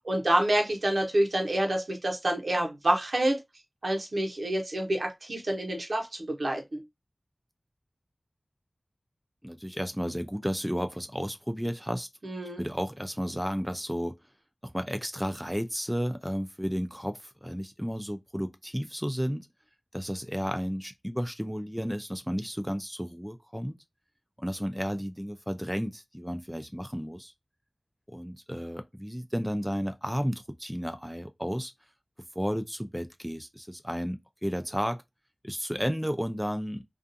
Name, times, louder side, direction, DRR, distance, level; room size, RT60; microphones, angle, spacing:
voice 1, 0.0-3.4 3.8-6.8 12.2-12.6, right 1 dB, 80° right, 0.9 m, -27 dB
voice 2, 9.4-12.1 12.6-14.2 14.6-19.5 19.9-23.8 24.4-27.3 28.1-31.7 32.4-35.0 35.4-36.8, equal, 5° right, 0.4 m, -32 dB
2.4 x 2.4 x 2.6 m
wide cardioid pair, 60°, 0 cm